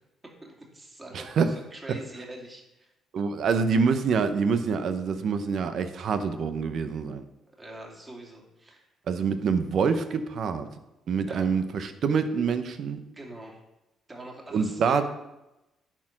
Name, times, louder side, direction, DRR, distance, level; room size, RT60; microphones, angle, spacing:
voice 1, 0.4-2.9 7.5-8.9 11.3-11.5 13.1-13.6 14.1-15.0, right 1 dB, 25° right, -1 dB, 2.7 m, -44 dB
voice 2, 1.1-1.5 3.1-7.2 9.1-10.7 11.1-13.0 14.5-15.0, right 5 dB, 65° right, 10 dB, 0.8 m, -26 dB
10.0 x 4.6 x 5.9 m, 0.95 s
supercardioid pair, 70°, 0 cm